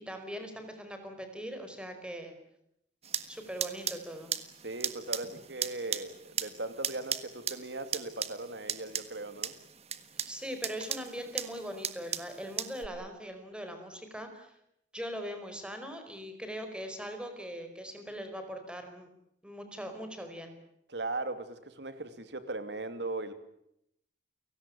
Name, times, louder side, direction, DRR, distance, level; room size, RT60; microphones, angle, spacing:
voice 1, 0.0-2.4 3.3-4.3 10.3-14.5 14.9-19.1 19.4-20.6, equal, 5° right, 6 dB, 4.9 m, -41 dB
sound 1, 3.0-12.9, right 8 dB, 35° right, 1.5 m, -38 dB
voice 2, 4.6-9.5 20.9-23.3, right 2 dB, 70° right, 10 dB, 2.7 m, -38 dB
30.0 x 18.0 x 8.8 m, 0.77 s
head